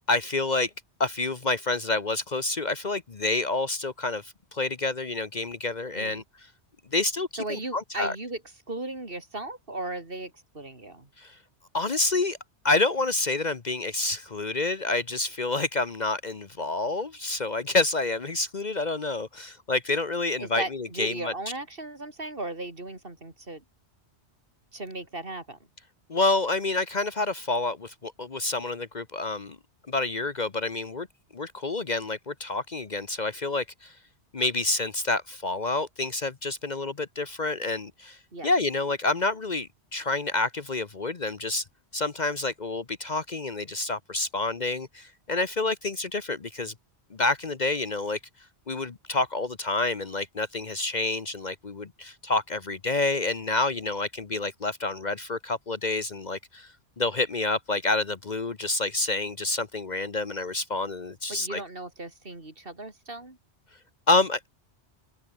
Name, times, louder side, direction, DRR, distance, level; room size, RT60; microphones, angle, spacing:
voice 1, 0.1-0.7 1.0-6.2 6.9-8.1 11.2-11.3 11.7-12.4 12.6-21.3 26.1-29.6 29.9-31.1 31.3-33.9 34.3-38.2 38.4-41.6 41.9-46.7 47.1-48.2 48.7-56.7 57.0-61.6 64.1-64.4, left 2 dB, 40° left, 1.2 m, -28 dB
voice 2, 7.4-8.4 8.7-11.1 20.4-23.6 24.7-25.6 38.3-38.5 61.3-63.4, right 2 dB, 55° right, 4.0 m, -36 dB
omnidirectional pair, 1.1 m